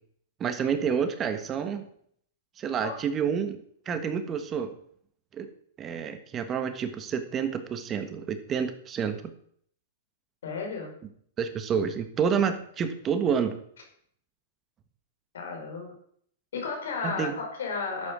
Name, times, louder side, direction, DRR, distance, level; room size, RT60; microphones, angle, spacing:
voice 1, 0.4-1.9 2.6-3.6 3.8-4.7 5.3-5.5 5.8-9.2 11.4-13.6 17.0-17.4, right 7 dB, 25° right, 9 dB, 1.5 m, -29 dB
voice 2, 10.4-10.9 15.3-15.9 16.5-18.1, left 4 dB, 80° left, 3 dB, 5.0 m, -33 dB
11.5 x 8.6 x 6.2 m, 0.63 s
hypercardioid pair, 130°, 0 cm